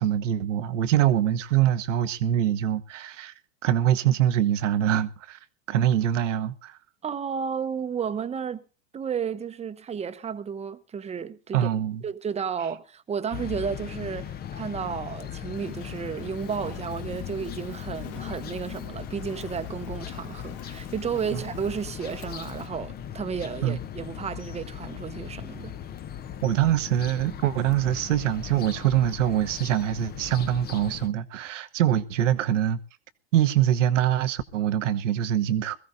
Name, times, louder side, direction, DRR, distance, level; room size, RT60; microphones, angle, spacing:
voice 1, 0.0-3.3 3.6-5.4 5.7-6.8 11.5-12.0 23.6-23.8 26.4-32.8 33.3-35.8, right 11 dB, 80° right, 1.1 m, -24 dB
voice 2, 7.0-8.6 8.9-11.7 12.0-25.7, right 7 dB, 15° right, 0.9 m, -32 dB
sound 1, 13.3-31.1, left 10 dB, 25° left, 0.8 m, -38 dB
Fire, 15.5-22.7, left 10 dB, 55° left, 2.5 m, -48 dB
21.5 x 15.0 x 2.7 m
hypercardioid pair, 110°, 37 cm